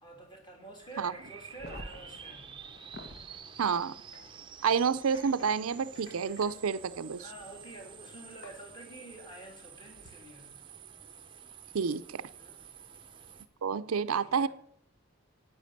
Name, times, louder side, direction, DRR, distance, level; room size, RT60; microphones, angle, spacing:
voice 1, 0.0-2.5 7.2-10.6 12.4-12.6 14.1-14.5, right 2 dB, 20° left, 3.2 m, -48 dB
sound 1, 0.8-13.5, right 7 dB, 20° right, 0.7 m, -50 dB
sound 2, 1.5-3.3 4.7-4.8 6.4-6.5 8.4-8.5 9.9-10.1, left 1 dB, 45° left, 1.4 m, -47 dB
sound 3, 2.7-7.7 8.2-8.5, left 2 dB, 75° left, 4.2 m, -57 dB
voice 2, 3.6-3.9 4.6-7.2 11.7-12.2 13.6-14.5, right 6 dB, 80° right, 0.5 m, -29 dB
10.5 x 9.1 x 6.6 m
head